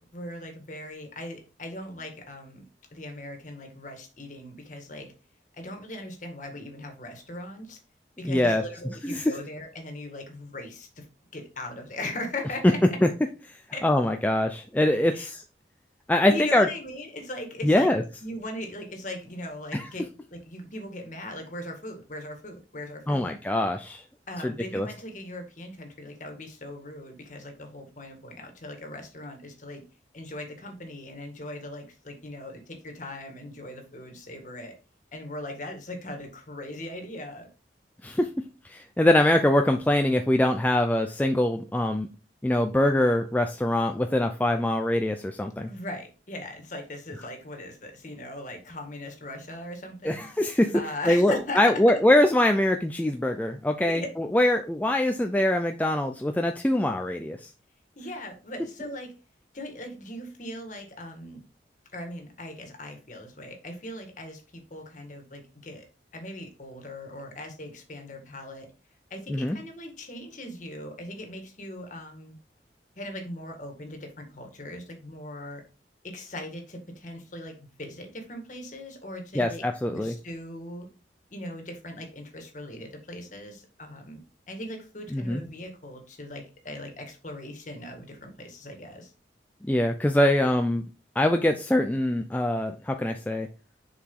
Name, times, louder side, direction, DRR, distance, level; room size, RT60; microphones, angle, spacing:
voice 1, 0.1-2.6 2.9-5.1 5.5-7.8 8.2-11.1 11.3-13.0 13.7-13.9 15.1-15.3 16.3-17.9 18.2-20.0 20.3-23.3 24.3-29.8 30.1-34.7 35.1-37.5 45.7-50.3 50.7-52.0 53.8-54.1 57.9-59.1 59.5-61.4 61.9-65.9 66.1-68.7 69.1-72.4 72.9-75.6 76.0-79.6 79.9-80.9 81.3-84.2 84.5-89.1, left 1 dB, 45° left, 4 dB, 1.7 m, -39 dB
voice 2, 8.2-9.3 13.0-13.1 13.5-13.6 13.8-15.4 16.1-16.7 17.6-18.0 19.7-19.9 23.1-24.0 24.4-24.9 38.0-42.1 42.4-45.7 50.0-50.8 51.1-57.5 69.3-69.6 79.3-80.1 85.1-85.4 89.6-90.9 91.2-93.5, left 1 dB, 10° left, 5 dB, 0.4 m, -23 dB
6.9 x 4.8 x 3.7 m, 0.33 s
head